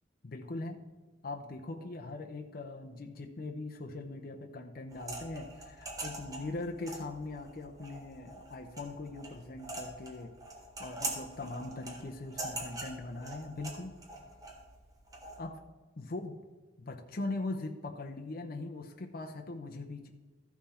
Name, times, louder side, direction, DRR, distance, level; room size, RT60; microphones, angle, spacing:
voice 1, 0.2-0.8 1.2-10.3 10.8-13.9 15.4-15.6 16.0-16.4 16.8-20.1, left 2 dB, 55° left, 3 dB, 0.7 m, -41 dB
sound 1, 4.9-15.4, right 2 dB, 20° right, 1.5 m, -44 dB
13.5 x 5.9 x 4.2 m, 1.2 s
head